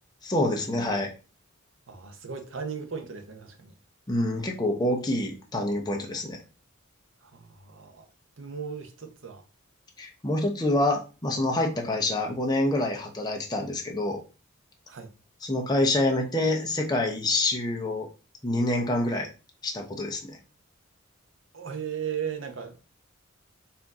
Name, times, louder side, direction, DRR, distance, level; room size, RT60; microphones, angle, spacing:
voice 1, 0.2-1.1 4.1-6.4 10.0-14.2 15.4-18.1 18.4-19.3 19.6-20.4, left 1 dB, 20° left, 0.8 m, -26 dB
voice 2, 1.9-3.7 7.2-8.1 8.4-9.4 14.9-15.1 21.5-22.8, right 7 dB, 60° right, 0.7 m, -36 dB
4.4 x 2.7 x 3.6 m
head